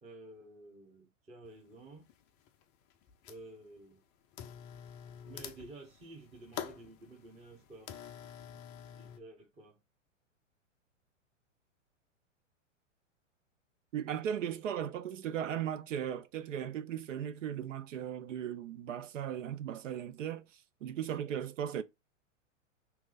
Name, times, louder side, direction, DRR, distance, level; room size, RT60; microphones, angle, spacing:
voice 1, 0.0-2.1 3.3-4.0 5.3-7.9 8.5-8.6 8.9-9.8, right 2 dB, 15° right, 1.0 m, -52 dB
sound 1, 1.4-1.5 2.1-2.6 2.9-3.6 4.3-9.2, left 9 dB, 25° left, 0.4 m, -47 dB
voice 2, 13.9-21.8, right 9 dB, 70° right, 0.6 m, -37 dB
3.0 x 2.8 x 3.9 m
hypercardioid pair, 110°, 39 cm